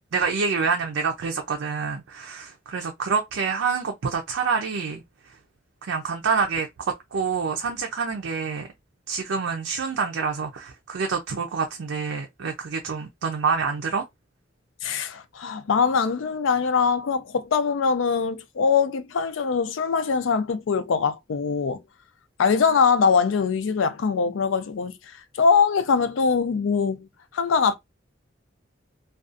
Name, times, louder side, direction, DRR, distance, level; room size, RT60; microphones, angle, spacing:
voice 1, 0.1-5.0 5.8-8.7 9.1-14.0, right 5 dB, 75° right, 0.4 m, -27 dB
voice 2, 14.8-21.8 22.4-27.1 27.3-27.7, left 5 dB, 80° left, 0.4 m, -22 dB
2.4 x 2.3 x 2.5 m
head